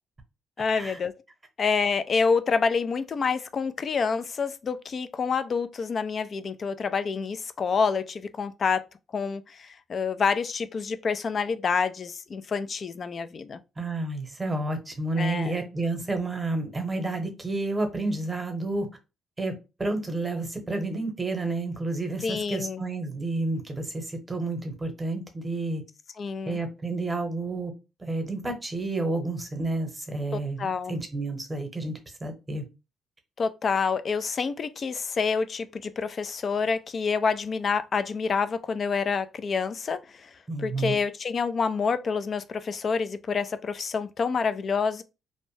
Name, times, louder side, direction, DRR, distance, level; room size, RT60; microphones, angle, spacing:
voice 1, 0.6-1.1 1.6-8.8 9.1-13.6 15.2-15.5 22.2-22.8 26.2-26.6 30.3-31.0 33.4-45.0, left 5 dB, 45° left, 0.3 m, -28 dB
voice 2, 13.8-18.9 19.4-19.5 19.8-25.8 26.5-27.7 28.0-32.6 40.5-41.0, right 2 dB, 20° right, 0.9 m, -30 dB
2.6 x 2.1 x 3.1 m
cardioid pair, 90°, 0 cm